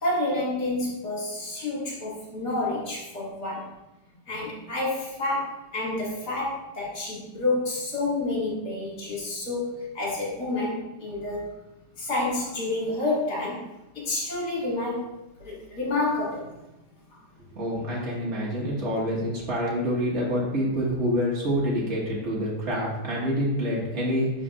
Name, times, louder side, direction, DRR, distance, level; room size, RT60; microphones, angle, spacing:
voice 1, 0.0-3.7 4.3-11.5 12.0-13.7 13.9-15.1 15.4-16.5, left 2 dB, 50° left, -6 dB, 2.7 m, -29 dB
voice 2, 17.6-24.3, equal, 35° right, -5 dB, 1.8 m, -27 dB
11.5 x 4.2 x 2.4 m, 0.94 s
omnidirectional pair, 2.3 m